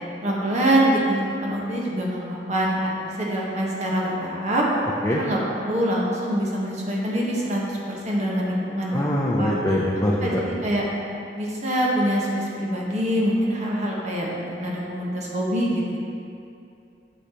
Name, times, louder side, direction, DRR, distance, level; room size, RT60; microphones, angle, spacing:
voice 1, 0.2-4.6 5.1-9.5 10.2-10.8 11.4-16.0, right 1 dB, 40° right, -3 dB, 1.2 m, -25 dB
voice 2, 8.9-10.4, left 1 dB, 15° left, -4 dB, 0.5 m, -23 dB
8.2 x 6.6 x 2.9 m, 2.6 s
head